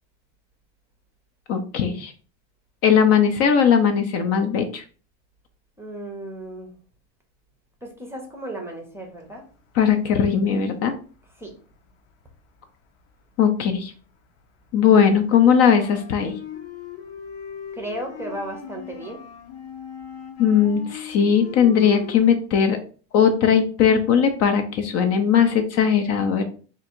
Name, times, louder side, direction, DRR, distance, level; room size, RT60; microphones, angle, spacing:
voice 1, 1.5-2.1 2.8-4.8 9.8-10.9 13.4-13.9 14.7-16.3 20.4-22.8 23.1-26.4, left 7 dB, 40° left, 6 dB, 0.6 m, -19 dB
voice 2, 5.8-6.7 7.8-9.5 11.4-11.6 17.7-19.2, right 1 dB, 5° right, 2 dB, 0.7 m, -35 dB
sound 1, 9.5-10.4 10.7-13.7 14.0-22.2, left 8 dB, 65° left, 0.9 m, -39 dB
3.6 x 2.6 x 4.4 m, 0.39 s
supercardioid pair, 140°, 38 cm